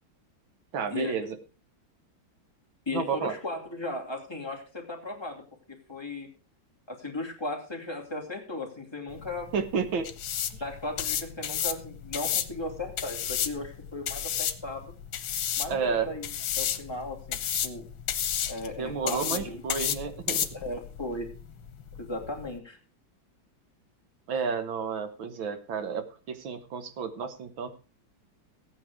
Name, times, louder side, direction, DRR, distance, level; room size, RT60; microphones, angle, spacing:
voice 1, 0.7-1.4 2.9-3.3 9.5-10.1 10.5-10.6 15.7-16.1 18.8-20.5 24.3-27.7, right 6 dB, 85° right, 9 dB, 2.1 m, -31 dB
voice 2, 2.9-6.3 6.9-9.5 10.6-14.9 15.5-16.3 16.6-17.9 18.5-19.6 20.5-21.3 22.0-22.8, left 2 dB, 15° left, -1 dB, 2.8 m, -36 dB
sound 1, 9.1-22.6, left 9 dB, 85° left, 1.8 m, -33 dB
15.0 x 9.1 x 4.8 m, 0.34 s
omnidirectional pair, 2.1 m